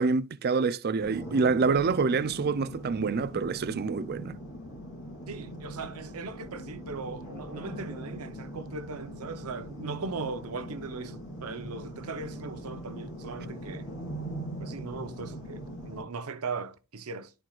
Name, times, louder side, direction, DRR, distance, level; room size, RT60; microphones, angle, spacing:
voice 1, 0.0-4.4, right 4 dB, 45° right, 0.4 m, -26 dB
sound 1, 1.0-16.0, equal, 80° left, 2.5 m, -41 dB
voice 2, 5.3-13.9 14.6-17.3, right 4 dB, 85° right, 0.8 m, -38 dB
12.5 x 4.4 x 2.4 m
head